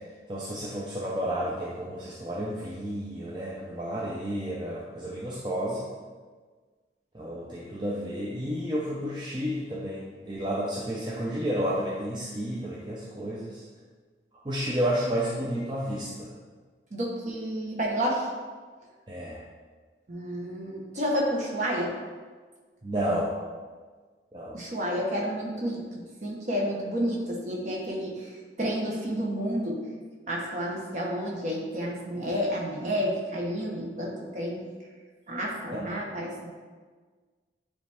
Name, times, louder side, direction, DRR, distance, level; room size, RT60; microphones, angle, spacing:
voice 1, 0.3-5.8 7.1-13.6 14.4-16.3 19.1-19.4 22.8-23.4 24.3-24.6 35.8-35.9, equal, 25° right, -6 dB, 0.7 m, -31 dB
voice 2, 16.9-18.3 20.1-22.0 24.5-29.9 30.3-34.6 35.3-36.5, equal, 40° right, -2 dB, 1.2 m, -30 dB
9.7 x 3.4 x 3.5 m, 1.5 s
head